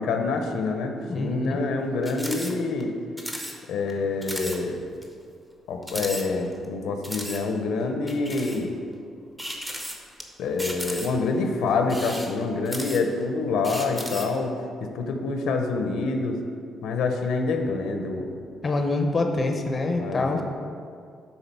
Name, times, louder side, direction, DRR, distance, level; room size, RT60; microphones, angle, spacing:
voice 1, 0.0-2.9 3.7-4.8 5.7-8.7 10.4-14.5 14.8-16.4 16.8-18.3 19.9-20.4, left 3 dB, 85° left, 5 dB, 0.7 m, -26 dB
voice 2, 1.1-1.6 18.6-20.4, left 2 dB, 30° left, 4 dB, 0.6 m, -25 dB
sound 1, 2.0-2.5 2.8-2.9 3.2-3.6 3.9-4.0 4.2-4.6 5.0-5.1 5.8-6.6 7.0-7.4 8.1-8.6 9.4-10.2 10.6-11.3 11.8-13.2 13.6-14.4, equal, 5° right, 0.7 m, -35 dB
7.2 x 3.9 x 5.4 m, 2.3 s
cardioid pair, 125°, 0 cm